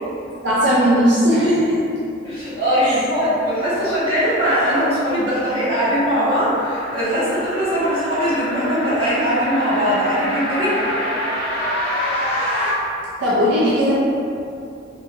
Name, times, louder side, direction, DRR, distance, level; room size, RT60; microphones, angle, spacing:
voice 1, 0.4-1.8 2.8-2.9 13.2-13.9, equal, 60° right, -8 dB, 0.5 m, -17 dB
voice 2, 2.2-10.9, equal, 30° right, -12 dB, 1.3 m, -20 dB
sound 1, 4.4-12.7, equal, 55° left, 0.9 m, -27 dB
3.7 x 2.8 x 2.6 m, 2.6 s
head